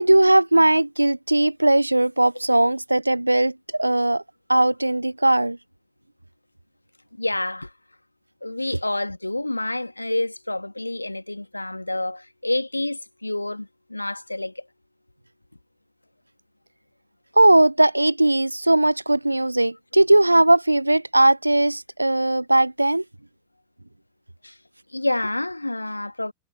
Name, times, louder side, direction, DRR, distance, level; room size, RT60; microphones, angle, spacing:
voice 1, 0.0-4.2 4.5-5.6 17.4-23.0, right 1 dB, 85° right, 0.8 m, -18 dB
voice 2, 7.2-7.7 8.4-14.7 24.4-24.6 24.9-26.3, left 2 dB, 85° left, 1.9 m, -28 dB
figure-of-eight pair, 90°, 0 cm